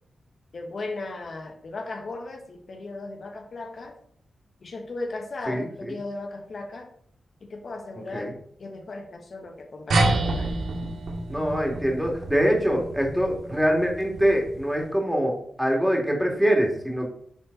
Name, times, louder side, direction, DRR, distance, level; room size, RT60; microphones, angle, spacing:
voice 1, 0.5-4.0 4.6-6.9 7.4-8.3 8.6-10.5, left 2 dB, 60° left, 2 dB, 1.3 m, -36 dB
sound 1, 9.9-14.8, right 2 dB, 85° right, 1.8 m, -28 dB
voice 2, 11.3-17.1, equal, 5° right, 0 dB, 2.5 m, -24 dB
10.0 x 4.4 x 4.1 m, 0.63 s
cardioid pair, 75°, 0 cm